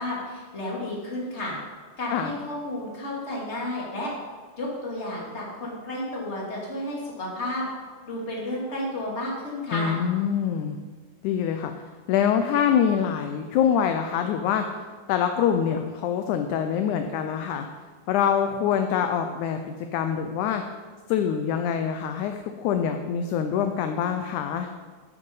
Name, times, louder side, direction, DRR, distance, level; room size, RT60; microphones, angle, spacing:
voice 1, 0.0-1.6 2.0-4.1 4.6-7.7 8.1-10.0, left 1 dB, 20° left, -4 dB, 2.5 m, -32 dB
voice 2, 9.7-10.8 11.2-11.7 12.1-14.7 15.1-17.7 18.1-20.6 21.1-24.7, left 8 dB, 80° left, 6 dB, 1.8 m, -25 dB
10.5 x 8.4 x 5.4 m, 1.5 s
omnidirectional pair, 3.9 m